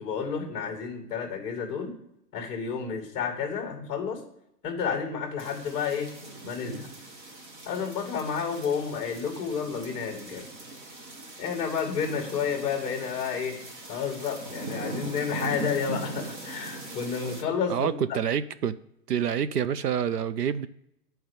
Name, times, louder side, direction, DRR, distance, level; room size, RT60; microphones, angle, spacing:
voice 1, 0.0-1.9 2.3-4.2 4.6-6.1 6.4-6.9 7.7-10.4 11.4-13.6 13.9-18.2, left 6 dB, 10° left, 1.2 m, -31 dB
sound 1, 5.4-17.4, right 2 dB, 30° right, 0.9 m, -40 dB
voice 2, 17.7-18.7 19.1-20.7, right 8 dB, 70° right, 0.7 m, -27 dB
9.0 x 4.6 x 6.6 m
hypercardioid pair, 160°, 49 cm